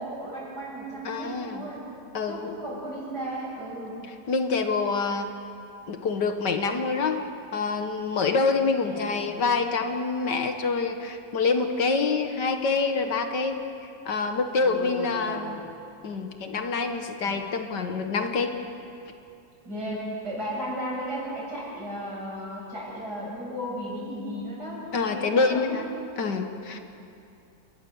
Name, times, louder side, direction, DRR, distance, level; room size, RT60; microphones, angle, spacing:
voice 1, 0.0-1.8 2.3-4.0 8.8-9.3 14.6-15.6 17.2-17.4 19.6-24.8 25.1-25.8, right 1 dB, 60° right, -5 dB, 8.4 m, -35 dB
voice 2, 1.0-1.7 2.1-2.5 4.3-5.3 5.9-7.2 7.5-13.6 14.1-15.6 16.0-18.5 24.9-26.8, left 4 dB, 65° left, 6 dB, 1.9 m, -26 dB
29.5 x 19.0 x 7.2 m, 2.6 s
omnidirectional pair, 2.0 m